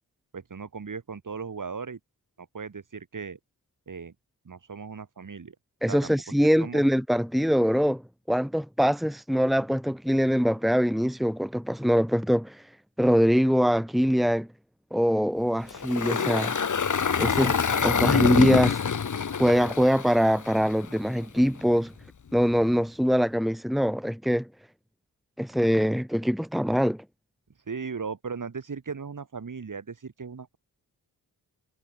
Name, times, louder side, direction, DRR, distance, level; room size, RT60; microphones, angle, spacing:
voice 1, 0.3-2.0 2.4-3.4 3.9-4.1 4.4-5.6 5.9-6.1 6.6-6.8 17.7-17.9 27.7-30.6, right 5 dB, 55° right, 7.8 m, -37 dB
voice 2, 5.8-8.0 8.3-12.6 13.0-14.5 14.9-16.6 17.2-18.8 19.4-21.9 22.3-24.5 25.4-27.0, equal, ahead, 1.9 m, -23 dB
Engine, 15.7-21.0, left 6 dB, 50° left, 2.0 m, -26 dB
cardioid pair, 80°, 37 cm